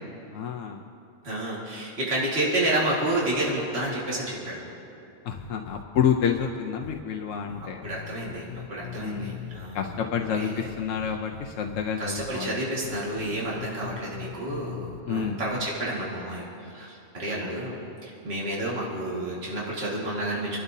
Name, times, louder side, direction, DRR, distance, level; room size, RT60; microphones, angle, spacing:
voice 1, 0.3-0.8 5.2-7.8 9.0-9.4 9.7-12.6 15.1-15.4 17.4-17.5, left 7 dB, 85° left, 2 dB, 1.1 m, -29 dB
voice 2, 1.2-4.6 7.6-10.7 12.0-20.6, right 1 dB, 55° right, -5 dB, 2.2 m, -30 dB
sound 1, 5.3-6.5 6.8-7.0 7.5-10.3 10.7-11.8 12.2-12.3 12.8-15.7, left 10 dB, 60° left, 0.7 m, -41 dB
27.0 x 12.0 x 2.7 m, 2.6 s
omnidirectional pair, 1.3 m